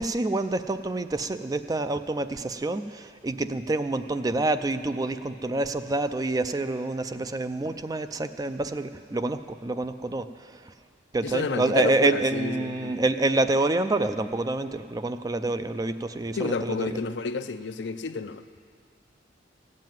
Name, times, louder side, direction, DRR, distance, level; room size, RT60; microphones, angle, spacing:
voice 1, 0.0-10.2 11.1-16.9, right 2 dB, 20° right, 10 dB, 0.4 m, -27 dB
voice 2, 11.2-13.0 16.3-18.4, left 4 dB, 75° left, 10 dB, 0.5 m, -30 dB
15.0 x 7.6 x 9.1 m, 2.1 s
head